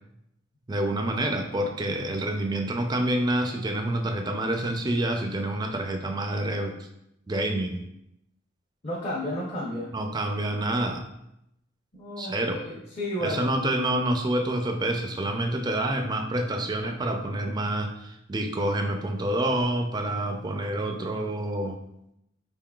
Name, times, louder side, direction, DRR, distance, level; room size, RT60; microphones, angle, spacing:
voice 1, 0.7-6.8 7.3-7.8 9.9-11.0 12.2-12.6 13.2-21.8, right 1 dB, 20° right, 4 dB, 0.4 m, -27 dB
voice 2, 8.8-9.9 11.9-13.6, left 1 dB, 35° left, -7 dB, 0.8 m, -32 dB
4.9 x 3.7 x 2.3 m, 0.81 s
head